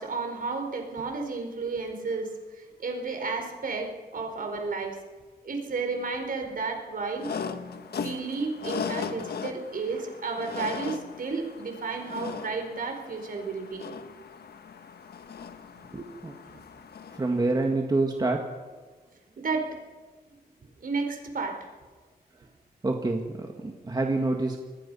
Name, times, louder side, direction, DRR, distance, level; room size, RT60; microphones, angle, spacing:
voice 1, 0.0-5.0 5.4-7.3 8.0-13.9 16.5-16.6 19.4-19.8 20.8-21.6, right 4 dB, 55° right, 3 dB, 4.6 m, -32 dB
sound 1, 7.2-17.5, left 6 dB, 70° left, 1.4 m, -38 dB
voice 2, 15.9-16.3 17.1-18.4 22.4-22.5 22.8-24.6, right 2 dB, 25° right, 2 dB, 1.9 m, -27 dB
27.0 x 20.0 x 5.6 m, 1.3 s
wide cardioid pair, 115°, 17 cm